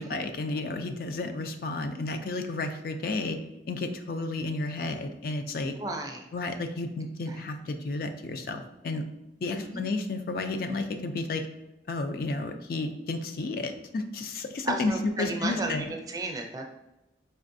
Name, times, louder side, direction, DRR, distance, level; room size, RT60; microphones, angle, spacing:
voice 1, 0.0-3.4 3.7-5.7 6.3-9.0 9.4-11.5 11.9-14.9 15.2-15.9, left 2 dB, 55° left, 7 dB, 0.3 m, -32 dB
voice 2, 5.8-6.2 7.3-7.4 9.5-9.8 14.6-16.7, right 2 dB, 20° right, 2 dB, 0.4 m, -34 dB
4.4 x 3.1 x 2.6 m, 0.91 s
head